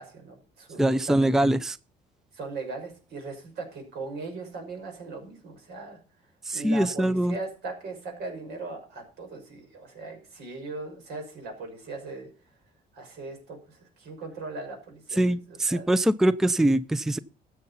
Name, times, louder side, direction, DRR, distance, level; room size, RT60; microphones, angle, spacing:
voice 1, 0.0-1.5 2.3-6.0 6.5-12.3 12.9-15.9, right 3 dB, 75° right, 6.1 m, -39 dB
voice 2, 0.8-1.8 6.5-7.3 15.1-17.2, right 1 dB, 5° right, 0.5 m, -23 dB
13.5 x 8.0 x 5.6 m
cardioid pair, 110°, 17 cm